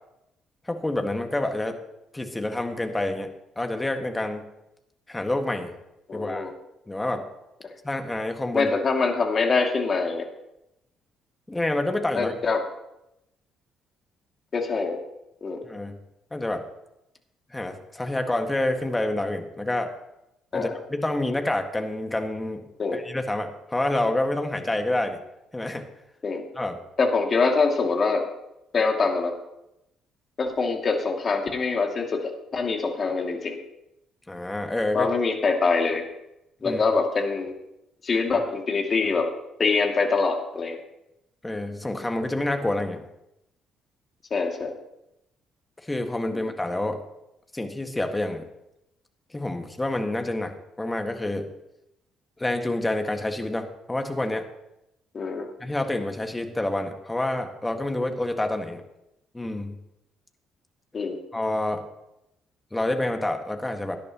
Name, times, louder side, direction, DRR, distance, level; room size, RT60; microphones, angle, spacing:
voice 1, 0.7-1.8 2.1-3.3 3.6-4.4 5.1-5.7 6.1-6.5 6.9-7.3 7.8-8.7 11.5-12.3 15.6-16.0 16.3-16.6 17.5-19.9 20.5-22.6 22.9-25.2 25.5-25.9 26.6-26.8 34.3-35.1 36.6-36.8 41.4-43.0 45.8-47.0 47.5-48.4 49.3-51.5 52.4-54.5 55.6-58.8 59.3-59.8 61.3-61.8 62.7-64.0, left 1 dB, 15° left, 5 dB, 1.8 m, -28 dB
voice 2, 6.1-6.5 8.5-10.3 12.1-12.6 14.5-15.0 15.4-15.6 20.5-20.8 22.8-23.0 26.2-26.4 27.0-28.3 28.7-29.3 30.4-33.6 34.9-36.0 36.6-37.5 38.0-39.3 39.6-40.8 44.3-44.7 46.3-46.4 55.1-55.5 60.9-61.2, left 4 dB, 40° left, 2 dB, 2.4 m, -24 dB
18.0 x 10.5 x 3.0 m, 0.87 s
hypercardioid pair, 45°, 0 cm